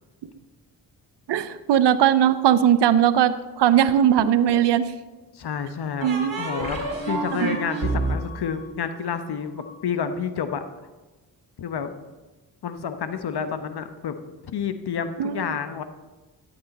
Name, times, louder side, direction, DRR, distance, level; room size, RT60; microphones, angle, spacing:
voice 1, 1.3-4.9 6.0-6.3 7.3-7.6 15.2-15.5, right 10 dB, 70° right, 13 dB, 0.8 m, -19 dB
sound 1, 3.9-4.7 6.0-9.7, right 3 dB, 50° right, 2.7 m, -30 dB
voice 2, 5.3-6.1 6.4-10.6 11.6-11.9 12.6-14.2 14.4-15.8, left 7 dB, 65° left, 10 dB, 1.0 m, -29 dB
13.0 x 8.6 x 4.2 m, 1.2 s
cardioid pair, 60°, 42 cm